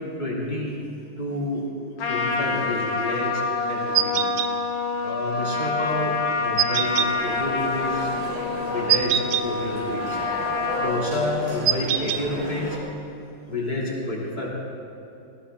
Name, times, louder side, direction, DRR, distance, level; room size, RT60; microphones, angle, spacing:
voice 1, 0.2-0.8 1.2-1.6 2.1-3.4 3.7-4.2 5.0-8.1 8.7-9.1 9.4-10.2 10.8-12.8 13.5-14.5, left 1 dB, 25° left, -5 dB, 3.3 m, -29 dB
Trumpet, 2.0-11.1, left 4 dB, 80° left, 1.9 m, -27 dB
sound 1, 4.0-4.5 6.6-7.1 8.9-9.5 11.7-12.2, right 10 dB, 90° right, 1.4 m, -22 dB
sound 2, 6.8-12.8, right 1 dB, 50° right, 3.4 m, -35 dB
19.5 x 16.5 x 3.7 m, 2.9 s
omnidirectional pair, 2.0 m